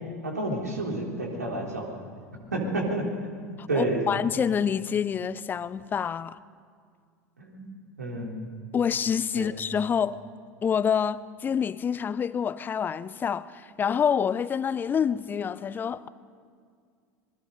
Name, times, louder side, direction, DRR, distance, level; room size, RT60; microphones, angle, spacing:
voice 1, 0.2-1.9 2.5-3.1 3.7-4.0 7.4-8.4 9.3-9.5, right 2 dB, 75° right, 3.7 m, -30 dB
voice 2, 3.6-6.4 8.7-10.2 10.6-16.1, left 7 dB, 20° left, 0.6 m, -27 dB
26.5 x 20.5 x 5.3 m
figure-of-eight pair, 80°, 9 cm